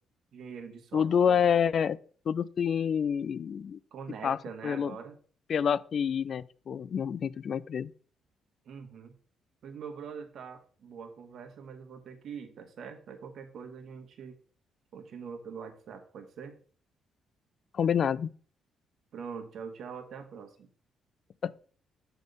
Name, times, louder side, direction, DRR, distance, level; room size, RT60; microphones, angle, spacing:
voice 1, 0.3-1.4 3.9-5.1 8.6-9.1 9.6-14.3 14.9-16.6 19.1-20.7, right 6 dB, 65° right, 1.3 m, -43 dB
voice 2, 0.9-2.0 2.3-3.8 4.2-4.4 4.6-4.9 5.5-7.9 17.7-18.3 21.4-21.5, left 7 dB, 55° left, 0.3 m, -27 dB
8.1 x 3.4 x 5.2 m
cardioid pair, 90°, 0 cm